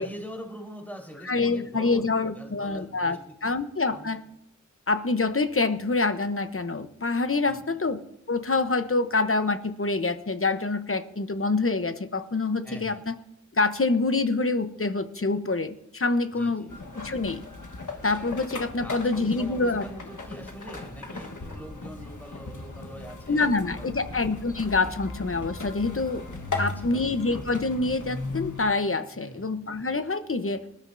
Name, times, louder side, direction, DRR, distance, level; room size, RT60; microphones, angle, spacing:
voice 1, 0.0-3.6 3.9-4.1 7.4-7.8 12.6-13.0 16.3-16.8 18.6-24.2 26.4-27.1 29.1-29.5, equal, 5° left, 0 dB, 4.4 m, -43 dB
voice 2, 1.2-4.2 4.9-8.0 8.3-13.2 13.5-16.7 16.9-17.4 18.0-19.9 23.3-26.2 26.6-30.6, left 3 dB, 45° left, 10 dB, 0.9 m, -26 dB
sound 1, 16.7-28.6, left 3 dB, 80° left, 1.4 m, -37 dB
19.5 x 12.5 x 2.7 m, 0.78 s
wide cardioid pair, 45°, 30 cm